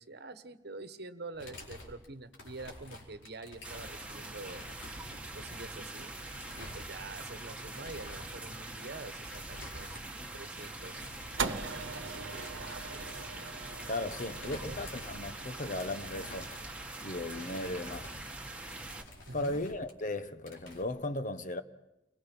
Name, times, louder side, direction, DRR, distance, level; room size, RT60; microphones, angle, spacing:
voice 1, 0.0-4.6 5.3-6.1 6.6-10.0 10.3-11.0 12.0-13.3 14.4-14.9 19.3-19.6, right 3 dB, 55° right, 1.3 m, -46 dB
sound 1, 1.3-7.3 7.7-8.4 9.2-10.2 10.5-11.7 11.9-15.5 15.8-20.1 20.4-20.8, left 1 dB, 75° left, 4.5 m, -50 dB
sound 2, 3.6-19.0, right 2 dB, 5° right, 1.5 m, -44 dB
sound 3, 11.4-17.7, right 5 dB, 75° right, 1.2 m, -41 dB
voice 2, 13.9-16.5 17.0-18.1 19.3-21.6, left 2 dB, 40° left, 1.0 m, -36 dB
29.5 x 22.5 x 5.5 m
head